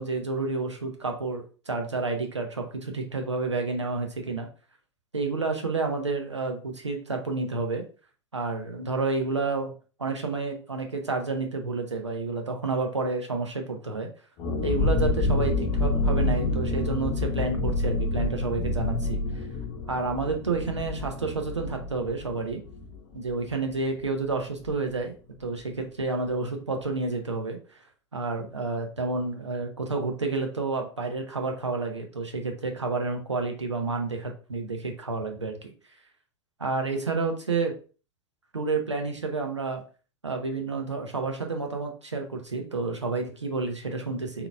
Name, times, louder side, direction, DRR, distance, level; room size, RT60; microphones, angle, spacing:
voice 1, 0.0-4.5 5.1-7.8 8.3-9.7 10.0-14.1 14.6-19.4 19.9-22.6 23.1-25.1 25.4-27.6 28.1-35.7 36.6-37.7 38.5-39.8 40.2-44.5, right 3 dB, 85° right, 4 dB, 0.8 m, -30 dB
sound 1, 14.4-23.8 24.1-24.2 24.5-24.8, left 2 dB, 40° left, 0.8 m, -28 dB
3.9 x 2.8 x 3.3 m, 0.36 s
figure-of-eight pair, 90°, 15 cm